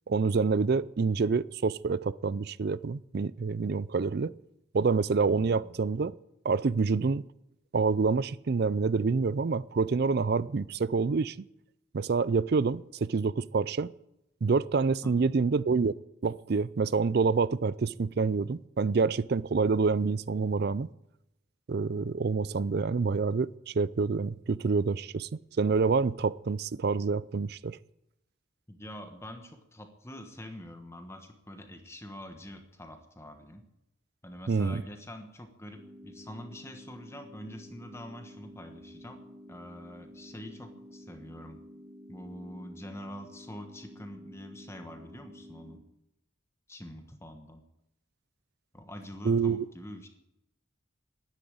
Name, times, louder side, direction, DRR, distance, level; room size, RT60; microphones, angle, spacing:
voice 1, 0.1-4.3 4.7-6.1 6.4-7.2 7.7-11.4 11.9-13.9 14.4-15.9 16.2-20.9 21.7-27.8 34.5-34.8 49.2-49.7, right 4 dB, 50° right, 20 dB, 0.4 m, -27 dB
voice 2, 5.3-5.8 15.0-15.3 28.7-33.6 34.2-41.6 42.1-45.8 46.7-47.6 48.7-50.1, equal, 15° left, 6 dB, 1.3 m, -45 dB
sound 1, 35.8-45.8, equal, 10° right, 1.9 m, -50 dB
11.5 x 10.0 x 8.7 m, 0.86 s
head